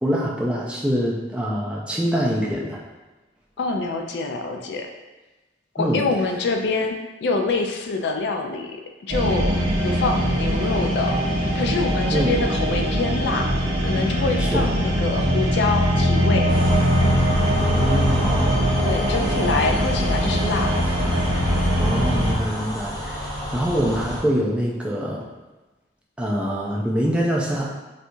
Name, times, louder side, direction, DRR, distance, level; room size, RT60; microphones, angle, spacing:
voice 1, 0.0-2.8 5.8-6.0 12.1-12.3 14.4-14.7 17.6-18.6 21.8-23.3 23.5-25.2 26.2-27.7, equal, 5° right, -4 dB, 0.4 m, -24 dB
voice 2, 3.6-4.9 5.7-6.9 7.2-8.7 9.1-11.2 11.5-13.5 13.8-16.5 18.8-20.8, left 3 dB, 70° left, 3 dB, 0.4 m, -25 dB
sound 1, 9.1-22.3, equal, 60° right, 0.7 m, -21 dB
sound 2, 16.5-24.2, equal, 25° left, 0.8 m, -30 dB
4.3 x 2.3 x 2.6 m, 1.1 s
head